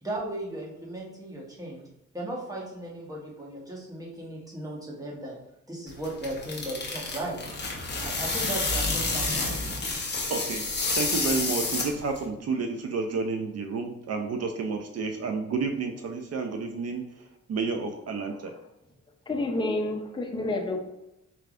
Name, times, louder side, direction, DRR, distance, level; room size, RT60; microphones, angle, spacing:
voice 1, 0.0-1.8 2.1-5.4 5.7-7.4 8.0-9.6, right 1 dB, 10° right, -4 dB, 1.2 m, -36 dB
sound 1, 5.9-12.2, left 3 dB, 35° left, 1.0 m, -29 dB
voice 2, 10.3-10.6 11.0-18.5, right 4 dB, 55° right, 5 dB, 0.5 m, -30 dB
voice 3, 19.3-20.8, left 2 dB, 15° left, 3 dB, 0.6 m, -29 dB
4.5 x 3.4 x 2.5 m, 0.90 s
cardioid pair, 80°, 29 cm